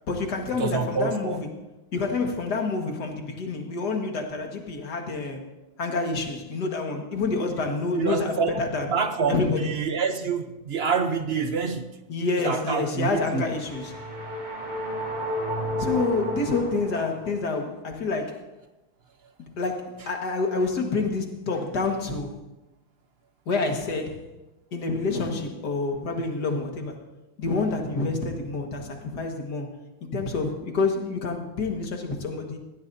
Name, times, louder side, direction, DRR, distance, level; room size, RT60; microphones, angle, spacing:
voice 1, 0.1-1.5 1.9-5.5 5.8-8.9 9.3-9.7 12.1-14.0 15.8-18.5 19.4-22.4 23.5-24.2 24.7-27.0 27.4-29.7 30.0-32.6, left 3 dB, 55° left, 3 dB, 2.2 m, -28 dB
voice 2, 0.6-1.4 7.9-8.6 8.9-13.5, right 5 dB, 50° right, 8 dB, 0.7 m, -27 dB
sound 1, 13.3-17.5, equal, 20° right, 2.4 m, -32 dB
20.0 x 16.0 x 2.7 m, 0.99 s
omnidirectional pair, 2.2 m